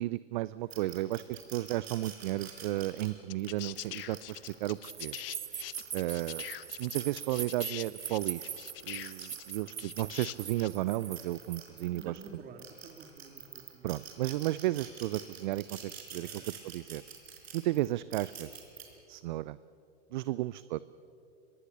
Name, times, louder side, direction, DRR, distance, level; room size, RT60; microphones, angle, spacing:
voice 1, 0.0-5.2 5.9-6.4 6.8-8.6 8.8-12.2 13.8-17.0 17.5-18.6 19.1-19.6 20.1-20.8, right 16 dB, 45° right, 18 dB, 0.5 m, -33 dB
sound 1, 0.7-5.0 5.6-7.6 8.0-12.3 12.6-18.8, right 8 dB, 65° right, 4.8 m, -47 dB
sound 2, 2.8-2.9 3.3-10.8 12.0-12.1, left 14 dB, 55° left, 0.8 m, -43 dB
sound 3, 4.8-11.8, right 8 dB, 85° right, 0.7 m, -42 dB
voice 2, 9.4-9.8 11.9-14.1 16.1-16.5 20.2-20.3, right 4 dB, 25° right, 6 dB, 2.5 m, -52 dB
24.5 x 21.0 x 6.7 m, 2.8 s
hypercardioid pair, 110°, 33 cm